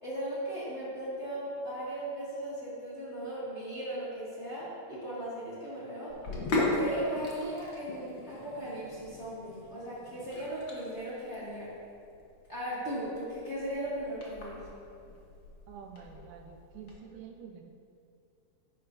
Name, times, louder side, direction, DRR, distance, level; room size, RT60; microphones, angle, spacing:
voice 1, 0.0-6.2 6.7-11.7 12.5-14.6, right 1 dB, 25° left, -10 dB, 2.0 m, -37 dB
Sink (filling or washing), 6.1-16.9, left 2 dB, 55° left, 1.4 m, -38 dB
voice 2, 15.7-17.7, right 7 dB, 80° right, 4 dB, 1.9 m, -48 dB
10.5 x 9.6 x 2.7 m, 2.5 s
omnidirectional pair, 3.7 m